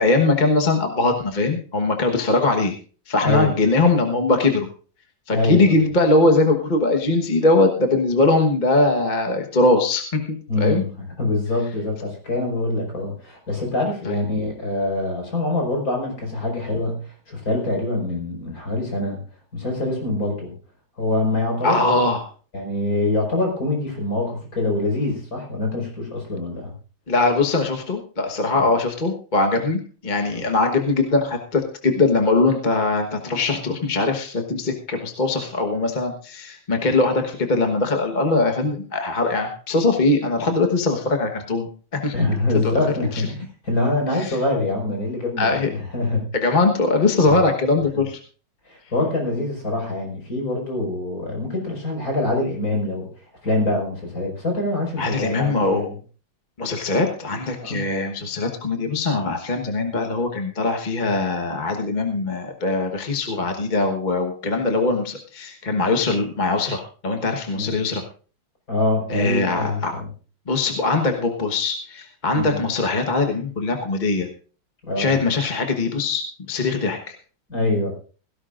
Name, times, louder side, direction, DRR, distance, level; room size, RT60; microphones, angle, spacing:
voice 1, 0.0-2.7 3.1-4.7 5.3-10.8 21.6-22.2 27.1-42.1 42.5-42.7 43.1-43.2 44.2-44.4 45.4-45.7 46.3-48.2 55.0-55.9 56.6-68.0 69.1-69.9 70.5-74.3 75.0-77.1, left 3 dB, 25° left, 3 dB, 1.2 m, -21 dB
voice 2, 3.2-3.6 5.3-5.8 10.5-19.2 19.5-20.5 21.0-22.0 22.5-26.7 28.5-28.7 30.3-30.5 42.1-46.3 47.2-47.4 47.9-48.0 48.7-53.1 53.4-56.0 57.6-57.8 67.5-67.8 68.7-70.1 72.3-72.6 74.9-75.2 77.5-77.9, left 2 dB, 45° left, 1 dB, 5.5 m, -24 dB
17.5 x 16.5 x 2.5 m, 0.39 s
omnidirectional pair, 2.1 m